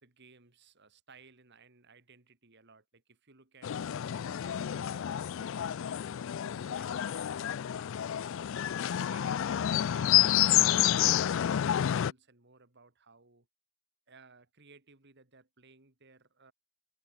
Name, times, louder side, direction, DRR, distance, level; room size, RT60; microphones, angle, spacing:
voice 1, 0.0-3.7 4.0-8.2 8.9-11.2 11.6-13.5 14.1-16.5, right 4 dB, 50° right, 2.3 m, -59 dB
sound 1, 3.6-12.1, left 11 dB, 60° left, 0.3 m, -29 dB
head